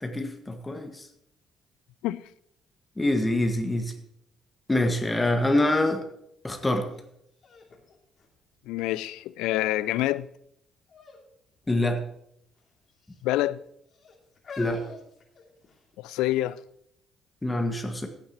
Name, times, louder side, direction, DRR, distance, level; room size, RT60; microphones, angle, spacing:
voice 1, 0.0-1.1 3.0-3.9 4.7-6.0 6.4-6.9 11.7-12.0 14.6-14.8 17.4-18.1, left 1 dB, 20° left, 1.6 m, -25 dB
sound 1, 6.9-7.0 7.4-9.0 9.5-10.0 10.9-11.2 11.5-11.7 12.6-13.2 13.9-16.0 16.7-16.8, left 4 dB, 45° left, 2.7 m, -45 dB
voice 2, 8.7-10.3 13.2-13.6 16.0-16.6, left 16 dB, 70° left, 0.4 m, -27 dB
15.5 x 10.5 x 3.0 m
figure-of-eight pair, 45°, 0 cm